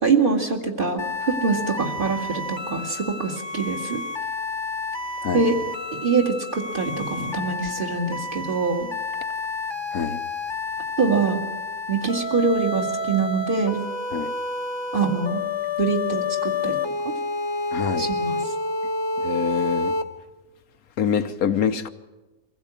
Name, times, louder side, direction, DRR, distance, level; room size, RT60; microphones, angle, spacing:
voice 1, 0.0-4.0 5.3-5.6 5.9-8.9 11.0-11.4 11.9-13.8 14.9-15.4 15.8-16.8 17.0-17.1 18.0-18.5, right 4 dB, 35° right, 1 dB, 2.3 m, -24 dB
sound 1, 1.0-20.0, left 3 dB, 20° left, 1.0 m, -29 dB
voice 2, 17.7-18.0 19.2-19.9 21.0-21.9, left 7 dB, 70° left, 9 dB, 1.3 m, -25 dB
23.5 x 16.0 x 8.4 m, 1.1 s
omnidirectional pair, 1.6 m